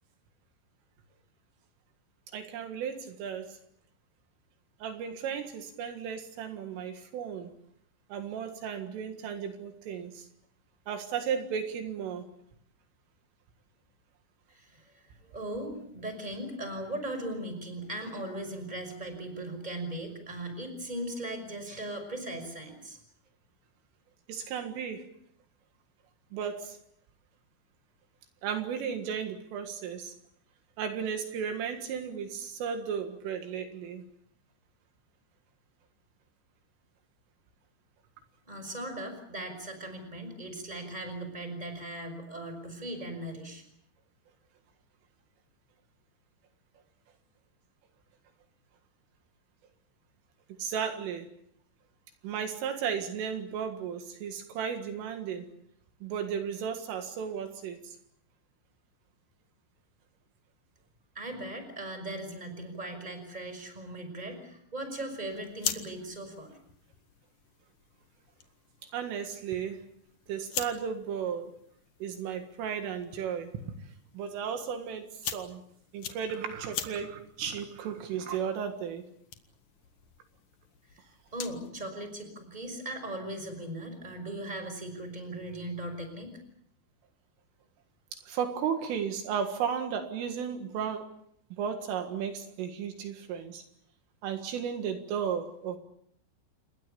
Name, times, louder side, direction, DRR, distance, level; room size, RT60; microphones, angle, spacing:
voice 1, 2.3-3.6 4.8-7.5 8.1-10.3 10.9-12.3 24.3-25.1 26.3-26.8 28.4-30.1 30.8-34.0 50.6-51.3 52.2-55.5 56.0-58.0 68.8-69.9 70.3-71.5 72.0-73.8 74.1-75.6 75.9-79.1 88.1-91.1 91.5-93.6 94.2-95.8, right 7 dB, 75° right, 6 dB, 4.2 m, -34 dB
voice 2, 14.5-23.0 38.5-43.6 61.1-66.5 80.9-81.0 81.3-86.3, right 1 dB, 10° right, 7 dB, 5.4 m, -38 dB
sound 1, 65.3-81.7, left 8 dB, 70° left, 1.8 m, -43 dB
29.0 x 22.0 x 7.0 m, 0.70 s
omnidirectional pair, 6.0 m